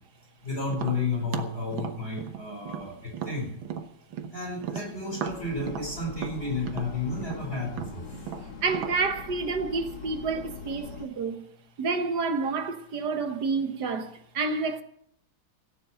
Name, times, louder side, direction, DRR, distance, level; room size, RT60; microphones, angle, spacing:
voice 1, 0.4-3.5 4.3-8.3, left 3 dB, 30° left, 5.9 m, -32 dB
Tap, 0.7-4.3 4.6-9.0, right 8 dB, 85° right, 2.0 m, -36 dB
sound 1, 5.3-11.1, left 4 dB, 90° left, 3.0 m, -42 dB
voice 2, 8.6-11.5 11.8-14.8, right 4 dB, 60° right, 1.8 m, -29 dB
17.0 x 10.0 x 6.3 m
omnidirectional pair, 2.1 m